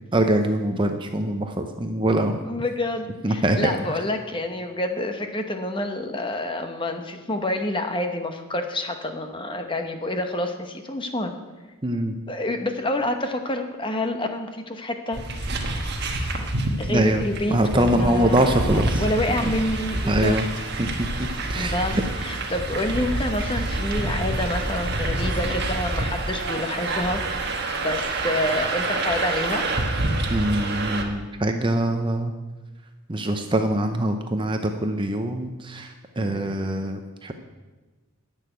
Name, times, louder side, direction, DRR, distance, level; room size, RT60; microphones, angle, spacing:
voice 1, 0.1-2.4 3.2-3.7 11.8-12.1 16.9-17.2 17.5-19.0 19.4-19.5 20.1-20.4 20.8-20.9 21.2-21.8 30.3-32.3 33.1-37.3, right 1 dB, 20° right, 6 dB, 0.7 m, -23 dB
voice 2, 2.4-11.3 12.3-15.5 16.8-20.4 21.5-29.7 36.2-36.6, left 1 dB, 20° left, 5 dB, 0.9 m, -28 dB
sound 1, 15.1-31.0, right 2 dB, 45° right, 1.4 m, -27 dB
10.5 x 6.6 x 9.3 m, 1.2 s
head